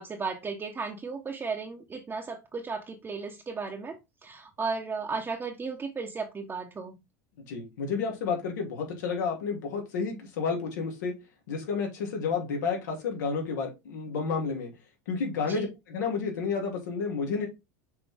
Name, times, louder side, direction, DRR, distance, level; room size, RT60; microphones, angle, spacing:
voice 1, 0.0-7.0 15.5-15.7, right 4 dB, 25° right, 1.2 m, -35 dB
voice 2, 7.5-11.1 11.5-14.7 15.1-17.5, left 5 dB, 80° left, 3.0 m, -31 dB
6.5 x 4.3 x 3.6 m
hypercardioid pair, 95°, 10 cm